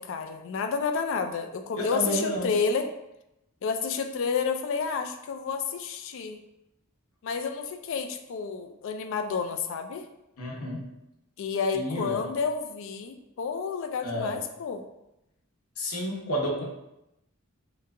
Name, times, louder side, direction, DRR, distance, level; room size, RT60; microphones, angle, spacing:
voice 1, 0.0-2.9 3.6-6.4 7.2-10.1 11.4-14.8, left 5 dB, 60° left, 7 dB, 0.3 m, -30 dB
voice 2, 1.8-2.5 10.4-10.9 11.7-12.3 14.0-14.4 15.8-16.6, equal, 85° left, -2 dB, 0.8 m, -30 dB
2.9 x 2.3 x 3.4 m, 0.88 s
head